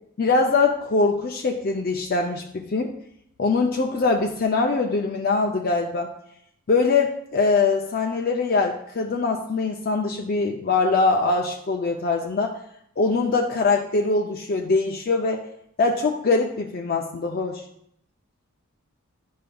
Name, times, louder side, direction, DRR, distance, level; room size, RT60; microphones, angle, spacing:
voice 1, 0.2-2.9 3.4-6.1 6.7-12.6 13.0-15.4 15.8-17.6, left 3 dB, 40° left, 1 dB, 0.4 m, -22 dB
11.0 x 5.1 x 2.3 m, 0.72 s
head